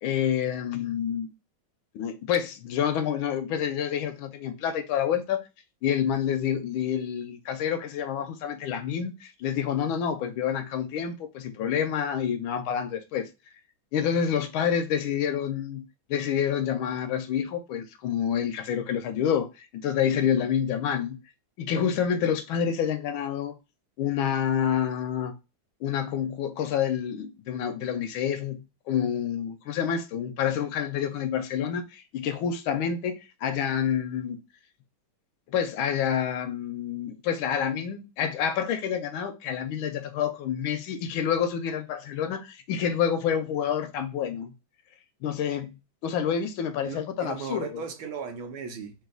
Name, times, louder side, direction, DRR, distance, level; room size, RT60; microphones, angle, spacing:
voice 1, 0.0-1.3 1.9-5.4 5.8-13.3 13.9-15.8 16.1-21.2 21.6-23.5 24.0-25.3 25.8-34.4 35.5-44.5 45.2-45.8 46.0-47.8, left 8 dB, 80° left, 1.4 m, -28 dB
voice 2, 46.8-48.9, right 6 dB, 85° right, 1.7 m, -36 dB
3.9 x 2.6 x 3.7 m
omnidirectional pair, 2.2 m